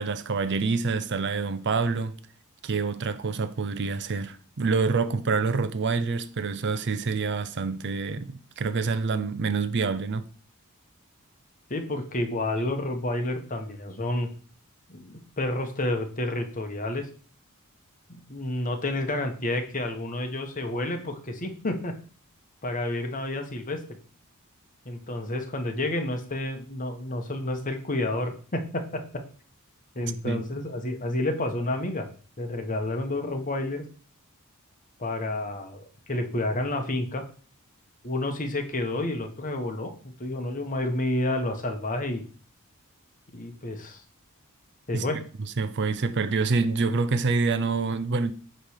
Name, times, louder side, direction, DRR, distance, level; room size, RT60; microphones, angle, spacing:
voice 1, 0.0-2.1 2.6-10.2 30.2-30.4 44.9-45.0 45.6-48.3, right 4 dB, 50° right, 0.6 m, -27 dB
voice 2, 11.7-14.3 14.9-17.1 18.1-21.9 22.6-23.8 24.8-29.2 29.9-32.1 32.4-33.8 35.0-37.2 38.0-39.9 40.2-42.2 43.3-44.0 44.9-45.2, left 1 dB, 35° left, 1.2 m, -30 dB
8.9 x 3.3 x 6.5 m
head